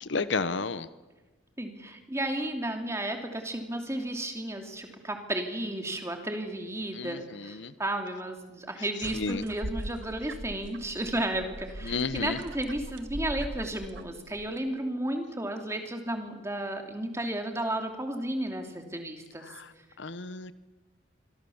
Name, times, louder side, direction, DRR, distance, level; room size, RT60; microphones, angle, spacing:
voice 1, 0.0-0.9 7.0-7.7 9.1-9.4 11.8-12.4 19.5-19.7 20.0-20.5, left 4 dB, 65° left, 14 dB, 0.9 m, -32 dB
voice 2, 1.6-19.5, right 1 dB, 15° right, 4 dB, 2.9 m, -33 dB
sound 1, 9.0-14.6, right 1 dB, 75° right, 1.3 m, -40 dB
25.5 x 23.5 x 7.2 m, 1.2 s
head